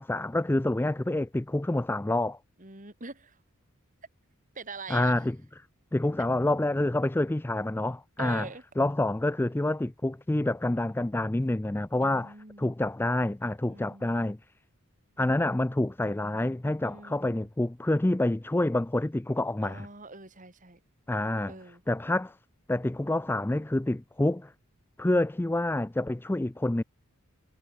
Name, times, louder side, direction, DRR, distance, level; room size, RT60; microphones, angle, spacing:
voice 1, 0.0-2.4 4.9-5.4 5.9-8.5 8.8-14.4 15.2-19.9 21.1-21.5 21.9-22.3 22.7-24.5 25.0-26.8, left 1 dB, 10° left, 0.4 m, -27 dB
voice 2, 2.6-3.4 4.5-5.1 8.2-8.6 12.0-12.7 13.6-14.2 16.8-17.4 19.6-20.8 21.5-21.8, right 3 dB, 35° right, 4.1 m, -44 dB
head